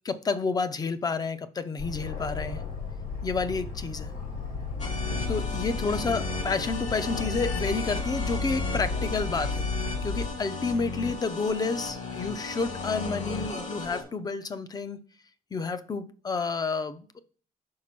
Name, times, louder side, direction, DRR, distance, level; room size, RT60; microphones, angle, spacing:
voice 1, 0.0-2.6 3.2-4.1 5.3-9.7 10.0-15.0 15.5-17.2, left 4 dB, 25° left, 13 dB, 0.5 m, -30 dB
Aircraft, 1.8-10.3, left 4 dB, 75° left, 2.8 m, -33 dB
sound 1, 4.8-14.0, left 3 dB, 50° left, 1.8 m, -36 dB
5.0 x 4.7 x 5.9 m, 0.42 s
cardioid pair, 135°, 15 cm